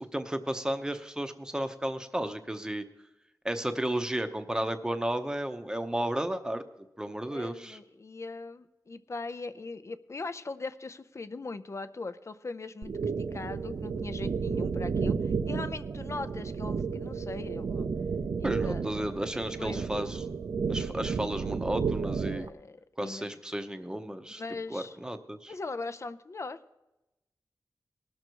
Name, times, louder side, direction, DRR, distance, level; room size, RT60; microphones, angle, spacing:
voice 1, 0.0-2.8 3.4-6.6 7.0-7.8 18.4-20.3 20.7-22.5 23.0-24.4 24.7-25.5, right 1 dB, 10° right, 7 dB, 0.8 m, -33 dB
voice 2, 7.3-12.9 13.3-17.9 18.4-18.8 19.6-19.9 22.2-23.3 24.4-25.0 25.5-26.6, left 3 dB, 40° left, 11 dB, 0.6 m, -40 dB
sound 1, 12.8-22.5, right 5 dB, 60° right, 0.5 m, -32 dB
19.5 x 6.5 x 4.6 m, 0.96 s
wide cardioid pair, 110°, 7 cm